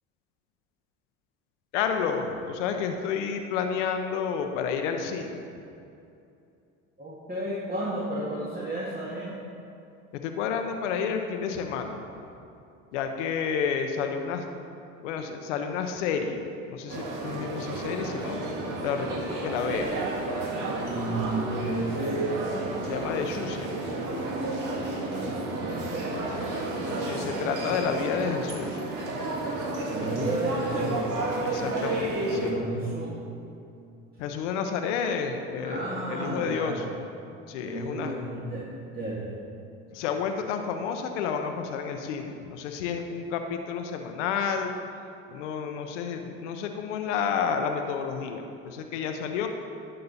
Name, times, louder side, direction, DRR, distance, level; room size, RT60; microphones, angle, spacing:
voice 1, 1.7-5.4 10.2-12.0 12.9-14.5 15.0-18.4 18.8-20.0 22.8-23.7 27.0-28.8 31.4-32.6 34.2-36.8 37.5-38.1 39.9-44.7 45.3-49.5, left 6 dB, 90° left, 5 dB, 0.7 m, -30 dB
voice 2, 7.0-9.3 20.8-22.4 25.0-27.1 29.9-31.0 32.3-33.3 35.6-36.8 37.6-39.4, right 2 dB, 25° right, -5 dB, 1.7 m, -33 dB
sound 1, 16.9-32.5, right 2 dB, 60° right, 1.6 m, -31 dB
sound 2, 19.7-25.8, equal, 10° left, 1.9 m, -51 dB
11.0 x 6.6 x 4.1 m, 2.6 s
supercardioid pair, 80°, 35 cm